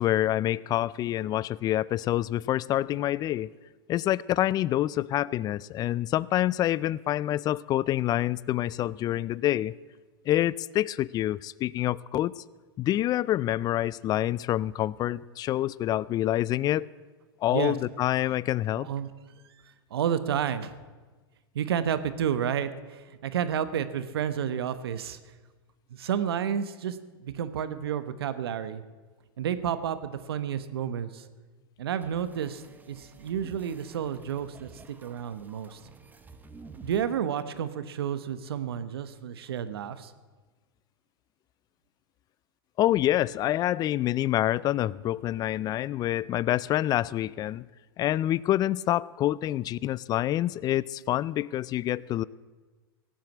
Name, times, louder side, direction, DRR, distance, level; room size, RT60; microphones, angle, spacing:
voice 1, 0.0-3.5 3.9-9.7 10.3-12.3 12.8-16.9 17.4-18.9 42.8-47.7 48.0-52.2, left 13 dB, 30° left, 22 dB, 0.4 m, -27 dB
voice 2, 18.8-19.1 19.9-20.8 21.5-25.2 25.9-28.8 29.4-31.2 31.8-32.6 32.9-34.7 35.0-35.8 36.8-40.1, right 9 dB, 85° right, 12 dB, 1.0 m, -30 dB
sound 1, 32.0-37.1, right 4 dB, 15° right, 1.1 m, -51 dB
17.5 x 7.6 x 8.6 m, 1.3 s
hypercardioid pair, 115°, 12 cm